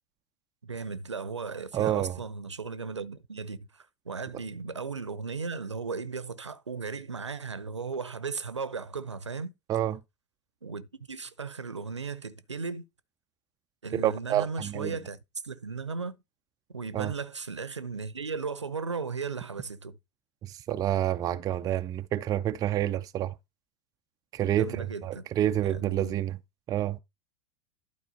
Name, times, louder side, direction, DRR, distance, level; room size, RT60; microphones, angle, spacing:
voice 1, 0.6-9.5 10.6-12.8 13.8-15.2 15.4-16.2 16.7-20.0 24.5-25.3 25.6-26.2, right 4 dB, 80° right, 0.8 m, -36 dB
voice 2, 1.7-2.2 9.7-10.0 13.9-15.0 16.9-17.1 20.4-23.3 24.3-26.4 26.7-27.0, right 11 dB, 25° right, 0.5 m, -28 dB
11.5 x 4.3 x 4.1 m
figure-of-eight pair, 85°, 15 cm